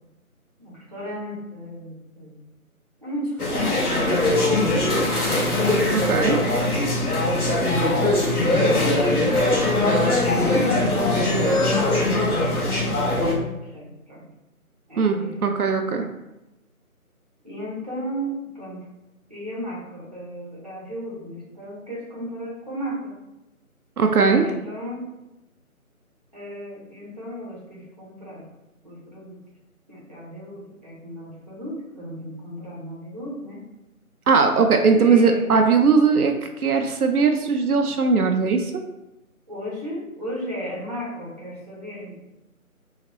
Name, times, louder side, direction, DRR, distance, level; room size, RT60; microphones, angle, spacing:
voice 1, 0.6-2.3 3.0-5.2 5.6-8.3 8.6-8.9 10.2-14.3 14.9-15.5 17.4-18.8 19.3-23.2 24.4-25.0 26.3-28.4 28.8-29.4 29.9-33.7 35.0-35.5 39.5-42.2, equal, 25° right, -6 dB, 0.9 m, -35 dB
sound 1, 3.4-13.4, left 2 dB, 80° left, 1.2 m, -21 dB
voice 2, 5.9-6.4 15.0-16.1 24.0-24.5 34.3-36.3 36.6-38.7, right 5 dB, 80° right, 4 dB, 0.6 m, -19 dB
3.9 x 2.9 x 2.9 m, 0.96 s
figure-of-eight pair, 170°, 44 cm